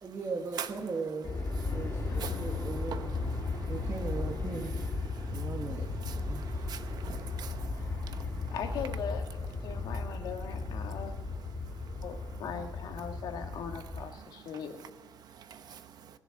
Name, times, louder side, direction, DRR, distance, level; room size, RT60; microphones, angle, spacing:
voice 1, 0.0-1.3 1.7-3.1 3.7-4.8 5.3-5.9 6.2-6.6 7.8-7.9, right 4 dB, 40° right, 1.7 m, -38 dB
Aircraft, 1.2-14.0, left 3 dB, 35° left, 3.6 m, -36 dB
voice 2, 2.1-2.6 8.5-9.3 9.6-11.2 11.9-14.8, left 7 dB, 90° left, 1.7 m, -40 dB
voice 3, 6.2-7.6 15.5-15.8, right 8 dB, 70° right, 0.9 m, -44 dB
20.0 x 6.8 x 8.9 m
cardioid pair, 100°, 7 cm